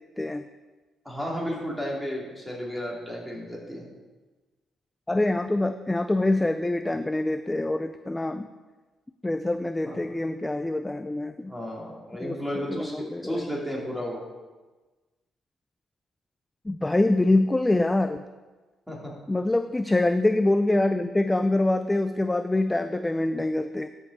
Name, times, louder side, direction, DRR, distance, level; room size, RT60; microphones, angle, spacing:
voice 1, 1.0-3.9 9.9-10.0 11.5-14.2 18.9-19.1, equal, ahead, -4 dB, 2.9 m, -33 dB
voice 2, 5.1-8.5 9.2-11.5 12.2-12.4 12.7-13.4 16.7-18.2 19.3-23.9, left 2 dB, 15° left, 9 dB, 0.3 m, -25 dB
12.5 x 5.3 x 4.2 m, 1.3 s
cardioid pair, 90°, 0 cm